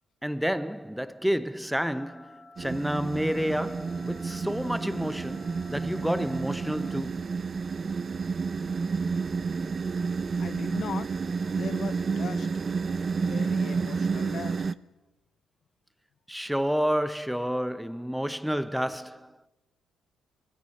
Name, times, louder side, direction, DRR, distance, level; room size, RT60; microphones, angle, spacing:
voice 1, 0.2-7.2 16.3-19.3, equal, ahead, 0.9 m, -30 dB
sound 1, 2.0-7.0, left 3 dB, 85° left, 4.6 m, -52 dB
sound 2, 2.6-14.7, right 5 dB, 40° right, 0.8 m, -30 dB
voice 2, 10.4-11.1 11.4-12.5 13.2-14.6, left 8 dB, 60° left, 0.7 m, -39 dB
24.5 x 24.0 x 6.6 m
cardioid pair, 90°, 0 cm